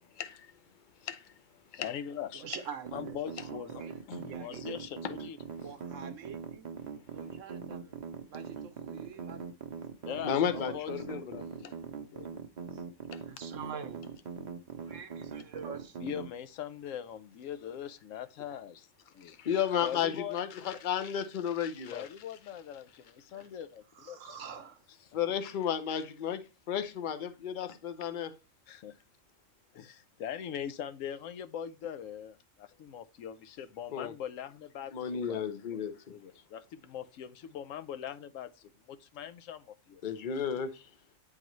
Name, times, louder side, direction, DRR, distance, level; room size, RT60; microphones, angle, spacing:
voice 1, 0.2-0.5 1.0-1.3 1.7-1.9 10.2-11.4 13.1-13.2 19.2-22.1 25.1-26.4 26.7-28.3 33.9-34.1 34.9-36.1 40.0-40.9, left 8 dB, 50° left, 0.6 m, -33 dB
voice 2, 1.8-2.5 2.9-5.4 10.1-12.4 16.0-18.9 19.1-19.4 19.8-20.4 20.7-20.8 21.9-24.4 28.7-29.0 29.7-35.4 35.7-40.0, left 9 dB, 75° left, 0.9 m, -42 dB
voice 3, 2.3-3.3 3.7-4.8 5.6-6.7 7.1-9.5 10.4-11.2 11.5-11.8 12.7-12.8 13.2-14.1 14.8-16.0 23.3-23.5 24.0-24.8, right 6 dB, 70° right, 1.0 m, -46 dB
sound 1, 2.8-16.3, right 6 dB, 45° right, 0.6 m, -41 dB
9.1 x 3.9 x 3.0 m
omnidirectional pair, 1.4 m